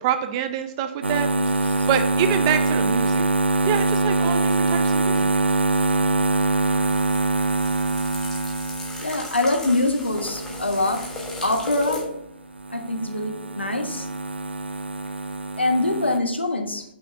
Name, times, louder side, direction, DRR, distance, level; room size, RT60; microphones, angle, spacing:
voice 1, 0.0-1.3 1.6-3.2 3.6-5.3, right 9 dB, 30° right, 8 dB, 0.5 m, -26 dB
sound 1, 1.0-12.3 12.5-16.2, right 3 dB, 80° right, 0.5 m, -24 dB
sound 2, 6.7-12.0, left 2 dB, 10° left, 1.3 m, -37 dB
voice 2, 9.0-11.1 11.4-12.1 12.7-14.1 15.6-16.8, left 2 dB, 85° left, 5 dB, 1.1 m, -24 dB
5.8 x 5.8 x 5.0 m, 0.78 s
figure-of-eight pair, 125°, 6 cm